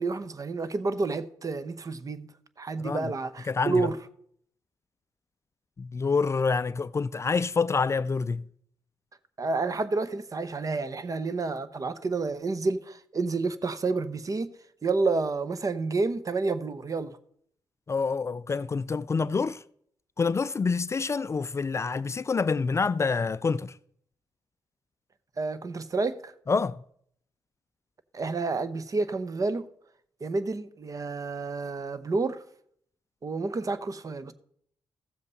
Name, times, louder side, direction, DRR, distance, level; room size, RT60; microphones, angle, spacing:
voice 1, 0.0-2.3 2.6-4.0 9.4-14.5 14.8-17.2 25.4-26.3 28.1-29.7 30.2-32.4 33.2-34.3, right 3 dB, 40° right, 0.8 m, -29 dB
voice 2, 3.5-3.9 5.8-8.4 17.9-19.6 20.2-23.7 26.5-26.8, left 4 dB, 35° left, 0.3 m, -27 dB
14.5 x 7.4 x 4.0 m
cardioid pair, 65°, 9 cm